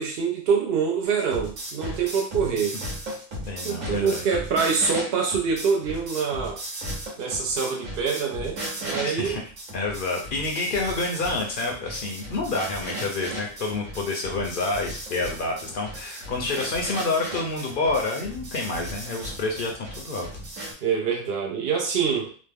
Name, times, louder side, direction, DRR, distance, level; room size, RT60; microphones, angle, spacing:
voice 1, 0.0-2.8 3.6-6.6 7.2-9.4 20.8-22.3, right 6 dB, 60° right, 0 dB, 0.7 m, -25 dB
sound 1, 1.0-20.7, right 1 dB, 80° right, 1.3 m, -36 dB
voice 2, 3.5-4.2 9.0-9.4 9.7-20.3, left 3 dB, 60° left, 1 dB, 0.6 m, -28 dB
3.0 x 2.1 x 3.4 m, 0.41 s
omnidirectional pair, 1.3 m